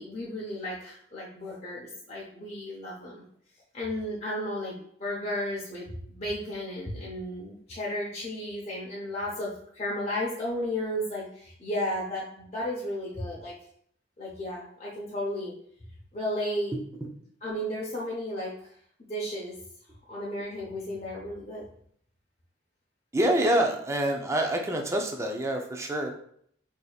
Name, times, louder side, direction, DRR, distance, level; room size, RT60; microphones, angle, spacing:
voice 1, 0.0-3.2 3.7-13.5 14.2-15.5 16.1-16.7 17.4-18.7 19.1-19.6 20.1-21.6, left 1 dB, 35° left, -5 dB, 0.7 m, -34 dB
voice 2, 23.1-26.1, right 1 dB, 15° right, 2 dB, 0.4 m, -26 dB
4.7 x 2.7 x 2.3 m, 0.64 s
head